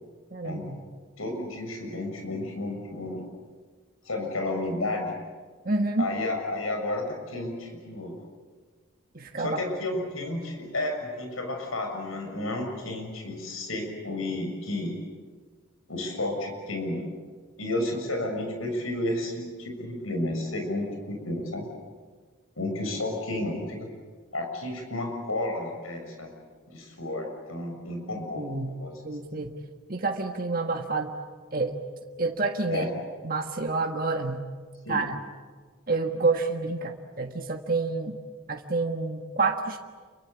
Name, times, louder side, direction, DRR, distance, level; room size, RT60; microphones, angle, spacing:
voice 1, 0.3-0.8 5.6-6.1 9.1-9.6 10.2-10.3 28.3-28.8 29.0-29.5 29.9-31.1 31.5-31.8 32.2-32.9 33.2-34.4 34.9-35.2 35.9-38.2 38.5-39.8, right 3 dB, 40° right, 3 dB, 1.6 m, -28 dB
voice 2, 1.2-3.2 4.0-5.2 6.0-8.1 9.4-14.9 15.9-17.0 17.6-21.6 22.6-23.9 24.3-26.3 26.7-28.9 32.7-32.9 34.8-35.0, left 1 dB, 80° left, 3 dB, 6.9 m, -32 dB
28.5 x 24.0 x 8.4 m, 1.5 s
head